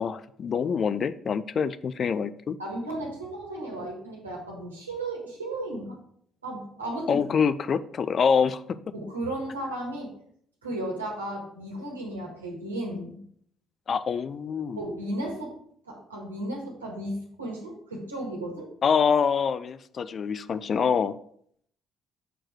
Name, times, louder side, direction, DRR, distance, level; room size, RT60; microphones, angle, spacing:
voice 1, 0.0-2.6 7.1-8.6 13.9-14.8 18.8-21.1, left 6 dB, 50° left, 14 dB, 0.4 m, -25 dB
voice 2, 2.6-5.9 6.4-7.2 8.9-10.1 10.6-13.2 14.7-15.5 15.9-18.7, right 1 dB, 90° right, -2 dB, 1.6 m, -34 dB
6.7 x 4.5 x 4.7 m, 0.65 s
figure-of-eight pair, 45°, 0 cm